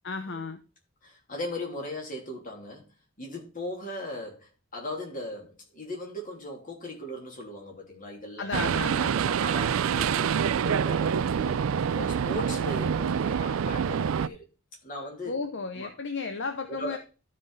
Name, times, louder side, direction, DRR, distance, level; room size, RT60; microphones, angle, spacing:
voice 1, 0.0-0.6 8.4-9.2 15.3-17.0, left 4 dB, 60° left, 0.8 m, -33 dB
voice 2, 1.0-8.7 9.1-11.6 11.9-14.4 14.8-15.4 15.8-15.9 16.7-17.0, left 1 dB, 40° left, 3.0 m, -38 dB
sound 1, 8.5-14.3, right 7 dB, 75° right, 0.4 m, -26 dB
12.0 x 5.3 x 4.0 m
head